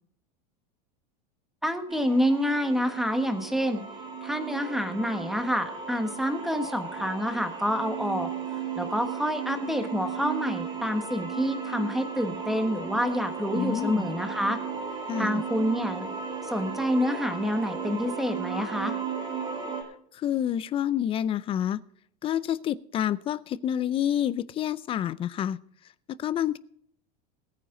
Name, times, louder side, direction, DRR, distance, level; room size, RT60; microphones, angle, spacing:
voice 1, 1.6-3.8 4.2-8.3 8.8-14.6 15.2-16.1 16.4-19.0, equal, ahead, 7 dB, 1.4 m, -28 dB
sound 1, 1.9-19.8, right 6 dB, 20° right, 3.0 m, -35 dB
voice 2, 13.5-14.1 15.1-15.4 20.1-21.8 22.2-25.6 26.2-26.6, left 10 dB, 25° left, 19 dB, 0.5 m, -28 dB
20.0 x 9.4 x 3.8 m, 0.65 s
supercardioid pair, 145°, 21 cm